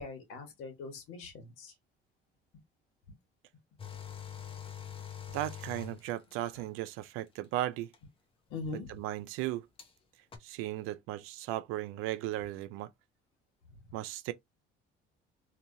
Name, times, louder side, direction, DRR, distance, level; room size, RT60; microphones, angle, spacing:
voice 1, 0.0-1.7 8.5-8.9, left 3 dB, 80° left, 1.5 m, -41 dB
sound 1, 3.8-6.7 7.9-8.0 9.8-9.9 10.3-10.4, left 9 dB, 25° left, 0.7 m, -44 dB
voice 2, 5.3-7.9 8.7-9.7 10.4-12.9 13.9-14.3, right 14 dB, 85° right, 0.5 m, -36 dB
2.9 x 2.8 x 2.6 m
cardioid pair, 115°, 21 cm